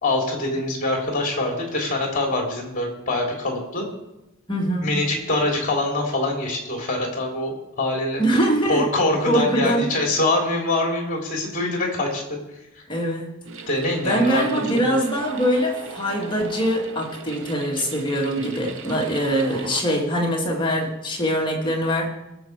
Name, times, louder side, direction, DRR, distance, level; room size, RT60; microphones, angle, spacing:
voice 1, 0.0-3.9 4.8-8.2 8.7-12.4 13.6-14.4 14.7-14.9, left 2 dB, 40° left, 1 dB, 3.1 m, -24 dB
voice 2, 4.5-4.9 8.2-8.8 9.3-9.9 12.9-13.3 14.0-22.1, equal, 25° left, -1 dB, 2.0 m, -23 dB
sound 1, 13.4-19.8, right 4 dB, 65° right, 1.0 m, -38 dB
19.5 x 6.9 x 4.7 m, 0.93 s
head